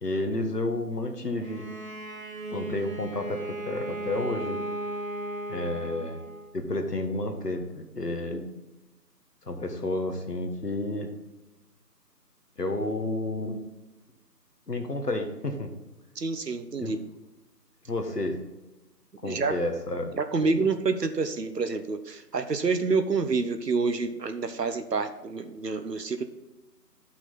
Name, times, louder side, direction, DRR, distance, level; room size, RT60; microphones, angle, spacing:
voice 1, 0.0-1.7 2.5-4.6 5.5-6.2 6.5-8.4 9.4-11.1 12.6-13.6 14.7-15.7 16.8-16.9 17.9-18.4 19.2-20.1 20.6-20.7, left 2 dB, 70° left, 5 dB, 1.6 m, -31 dB
Bowed string instrument, 1.4-6.6, right 1 dB, 55° right, 1.2 m, -36 dB
voice 2, 16.2-17.0 19.2-19.5 20.2-26.2, right 4 dB, 75° right, 9 dB, 0.9 m, -28 dB
9.8 x 6.0 x 4.0 m, 1.0 s
figure-of-eight pair, 160°, 49 cm